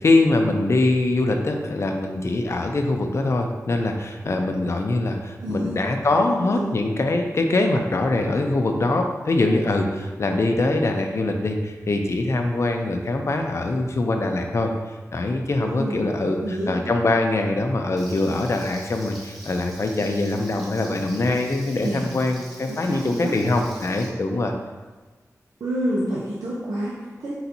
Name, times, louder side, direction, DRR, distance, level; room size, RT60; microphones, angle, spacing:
voice 1, 0.0-14.7 15.1-24.5, left 2 dB, 50° left, 4 dB, 0.5 m, -23 dB
voice 2, 5.4-5.8 6.1-6.7 15.6-16.7 21.8-22.1 22.7-23.3 25.6-27.3, equal, 85° right, -7 dB, 0.7 m, -29 dB
Frying (food), 18.0-24.1, equal, ahead, 1.1 m, -44 dB
4.3 x 3.9 x 2.7 m, 1.3 s
wide cardioid pair, 85°, 6 cm